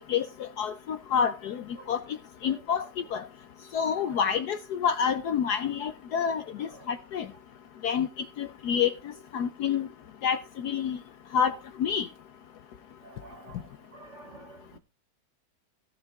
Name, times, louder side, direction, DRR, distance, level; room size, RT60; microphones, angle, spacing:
voice 1, 0.0-2.0 2.4-2.8 3.1-3.3 3.7-7.3 7.8-8.1 8.4-8.9 9.3-9.9 10.2-11.0 11.3-12.1, left 7 dB, 65° left, 1.0 m, -28 dB
voice 2, 13.0-13.6 13.9-14.8, right 3 dB, 40° right, 1.5 m, -49 dB
16.0 x 6.6 x 3.6 m
omnidirectional pair, 2.1 m